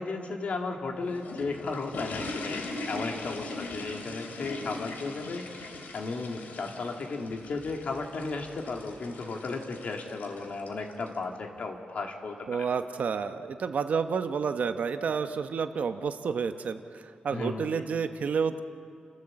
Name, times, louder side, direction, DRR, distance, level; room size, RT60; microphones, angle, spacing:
voice 1, 0.0-5.5 5.9-12.7 17.3-17.7, left 3 dB, 50° left, 3 dB, 2.1 m, -35 dB
sound 1, 0.8-11.2, left 2 dB, 85° left, 2.4 m, -40 dB
voice 2, 12.5-18.6, right 6 dB, 55° right, 9 dB, 0.9 m, -30 dB
30.0 x 15.0 x 7.6 m, 2.5 s
wide cardioid pair, 170°, 3 cm